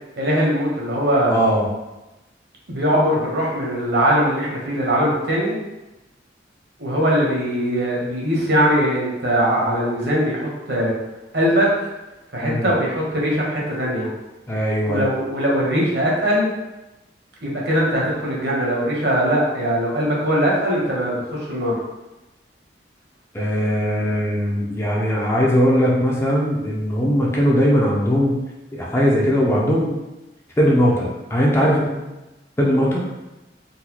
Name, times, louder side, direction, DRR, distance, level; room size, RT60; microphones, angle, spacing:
voice 1, 0.2-1.3 2.7-5.6 6.8-10.9 11.3-11.9 12.3-14.1 14.9-16.5 17.4-21.8, equal, 65° right, -3 dB, 0.9 m, -21 dB
voice 2, 1.3-1.7 12.4-12.7 14.5-15.0 23.3-28.4 28.7-30.0 30.6-32.0 32.6-33.0, equal, 15° left, -4 dB, 0.5 m, -19 dB
3.9 x 2.2 x 2.9 m, 1.0 s
head